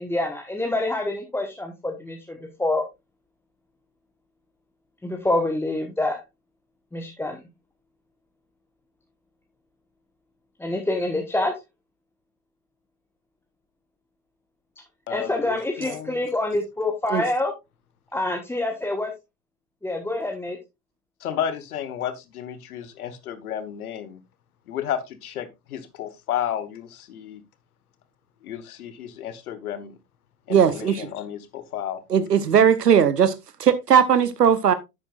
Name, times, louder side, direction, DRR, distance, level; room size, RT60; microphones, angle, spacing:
voice 1, 0.0-2.8 5.0-6.2 6.9-7.4 10.6-11.5 15.1-17.5 18.1-19.1 19.8-20.6, left 2 dB, 5° left, 1.4 m, -26 dB
voice 2, 15.1-16.2 21.2-24.2 24.7-27.4 28.4-30.0 30.5-32.0, left 10 dB, 65° left, 1.5 m, -32 dB
voice 3, 30.5-31.1 32.1-33.3 33.6-34.7, right 8 dB, 80° right, 1.1 m, -18 dB
10.5 x 8.7 x 2.5 m
figure-of-eight pair, 90°, 47 cm